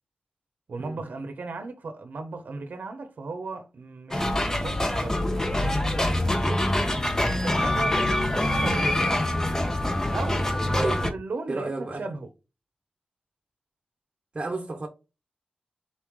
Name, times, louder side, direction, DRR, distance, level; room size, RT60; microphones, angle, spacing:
voice 1, 0.7-5.8 6.1-6.6 7.2-8.0 8.4-9.1 10.1-10.5 11.0-12.3, right 3 dB, 80° right, 0.7 m, -36 dB
sound 1, 4.1-11.1, left 1 dB, 20° left, 0.7 m, -25 dB
voice 2, 11.5-12.0 14.3-14.9, right 2 dB, 35° right, 0.8 m, -32 dB
4.3 x 3.0 x 3.5 m
wide cardioid pair, 110°, 3 cm